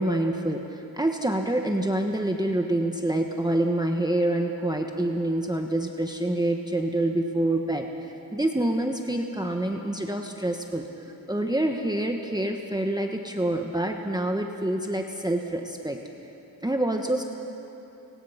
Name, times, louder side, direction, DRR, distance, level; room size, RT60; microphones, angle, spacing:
voice 1, 0.0-7.9 8.3-10.9 11.3-16.0 16.6-17.2, right 1 dB, 10° right, 3 dB, 1.4 m, -26 dB
29.5 x 19.0 x 5.9 m, 3.0 s
cardioid pair, 75°, 39 cm